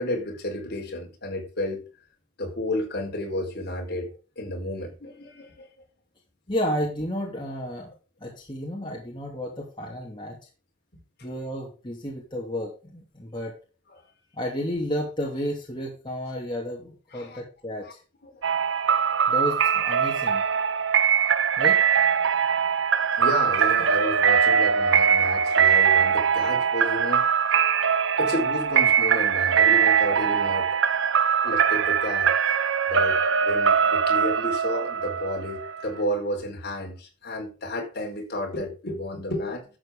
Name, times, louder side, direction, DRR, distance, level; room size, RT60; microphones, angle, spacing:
voice 1, 0.0-1.8 2.4-5.7 10.9-11.0 17.1-17.4 17.8-17.9 18.2-18.4 23.2-27.3 28.2-30.7 31.4-32.6 32.9-39.6, left 1 dB, 50° left, 4.1 m, -31 dB
voice 2, 6.5-7.9 8.2-10.4 11.2-13.5 14.3-18.0 19.3-20.4 21.6-21.8, equal, 20° left, 2.7 m, -32 dB
sound 1, 18.4-36.0, right 7 dB, 60° right, 0.6 m, -22 dB
12.5 x 7.9 x 3.6 m
head